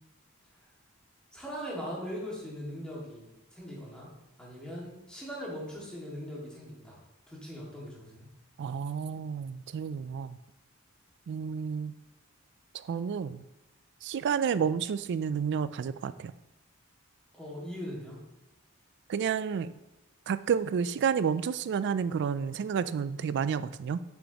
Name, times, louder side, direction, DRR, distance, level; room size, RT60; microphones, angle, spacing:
voice 1, 1.3-4.1 4.4-7.0 7.3-8.3 17.3-18.2, equal, 5° left, -6 dB, 2.0 m, -40 dB
voice 2, 8.6-10.4 11.3-12.0 12.7-13.4 14.0-16.3 19.1-19.7 20.3-24.0, right 7 dB, 55° right, 14 dB, 0.3 m, -30 dB
8.0 x 6.2 x 2.9 m, 1.0 s
head